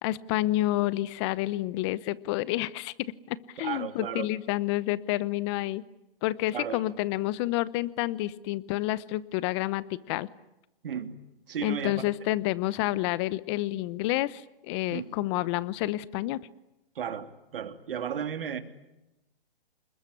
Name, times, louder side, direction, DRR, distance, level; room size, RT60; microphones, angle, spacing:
voice 1, 0.0-5.8 6.2-10.3 11.6-16.4, left 16 dB, 30° left, 19 dB, 0.9 m, -29 dB
voice 2, 3.6-4.3 6.5-6.8 10.8-11.2 11.5-12.1 14.9-15.1 16.9-18.6, right 8 dB, 65° right, 8 dB, 2.9 m, -34 dB
27.5 x 21.5 x 9.7 m, 0.94 s
hypercardioid pair, 140°, 30 cm